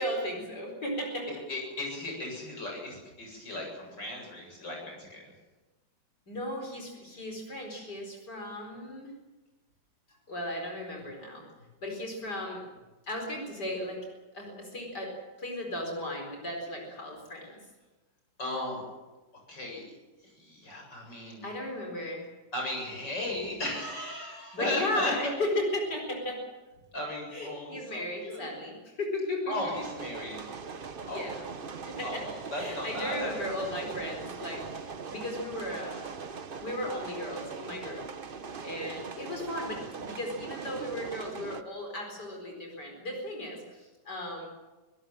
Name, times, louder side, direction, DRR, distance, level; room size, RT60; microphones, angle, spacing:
voice 1, 0.0-1.3 6.3-9.1 10.3-11.4 11.8-12.6 13.1-14.1 14.3-15.1 15.4-17.6 21.4-22.3 24.5-26.4 27.3-29.7 31.1-31.4 31.9-32.2 32.5-36.1 36.6-38.1 38.6-44.5, left 1 dB, 70° left, 1 dB, 5.0 m, -35 dB
voice 2, 1.3-5.2 18.4-18.8 19.5-19.8 20.4-21.5 22.5-25.1 26.9-28.5 29.5-30.4 31.1-31.4 32.0-33.3, left 1 dB, 85° left, 0 dB, 8.5 m, -36 dB
sound 1, 29.7-41.6, right 5 dB, 40° right, 0.9 m, -41 dB
25.5 x 17.0 x 7.7 m, 1.2 s
omnidirectional pair, 1.9 m